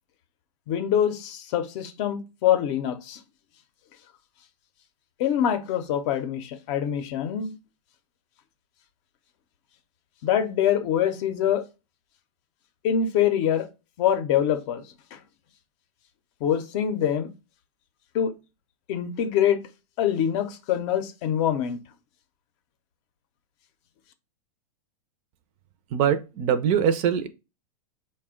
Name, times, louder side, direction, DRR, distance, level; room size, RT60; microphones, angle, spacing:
voice 1, 0.7-3.2 5.2-7.5 10.2-11.6 12.8-13.7 14.0-14.8 15.1-15.2 16.4-17.3 18.1-18.3 18.9-19.6 20.0-21.8, left 9 dB, 50° left, 0.6 m, -24 dB
voice 2, 25.9-27.3, right 8 dB, 40° right, 0.5 m, -22 dB
4.1 x 2.2 x 3.6 m
hypercardioid pair, 130°, 20 cm